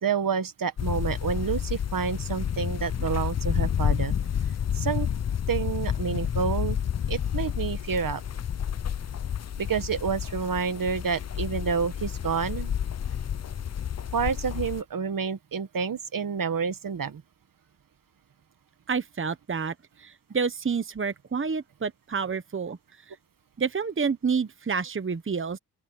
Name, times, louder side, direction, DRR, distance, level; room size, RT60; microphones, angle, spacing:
voice 1, 0.0-4.1 4.7-5.1 5.5-6.8 7.1-8.2 9.6-12.7 14.1-17.2, right 6 dB, 60° right, 1.3 m, -29 dB
sound 1, 0.8-14.8, left 8 dB, 45° left, 0.6 m, -30 dB
voice 2, 18.9-19.7 20.0-22.8 23.6-25.6, right 5 dB, 30° right, 1.1 m, -28 dB
open air
cardioid pair, 85°, 38 cm